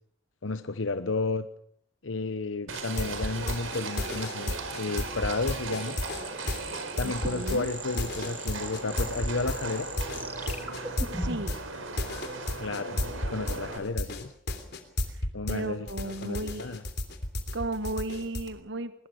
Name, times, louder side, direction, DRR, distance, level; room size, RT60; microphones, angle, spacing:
voice 1, 0.4-1.5 2.0-6.0 7.0-9.9 12.5-14.3 15.3-16.8, left 3 dB, 75° left, 11 dB, 0.9 m, -32 dB
sound 1, 2.7-15.6 15.9-18.5, left 1 dB, 55° left, 3.2 m, -32 dB
Livestock farm animals working animals, 2.7-13.8, right 3 dB, 85° right, 4.6 m, -38 dB
sound 2, 5.8-11.6, right 2 dB, 10° right, 2.3 m, -41 dB
voice 2, 7.0-7.7 11.2-11.6 15.1-16.8 17.5-18.9, right 2 dB, 60° right, 11 dB, 1.2 m, -35 dB
22.0 x 21.0 x 6.4 m, 0.62 s
head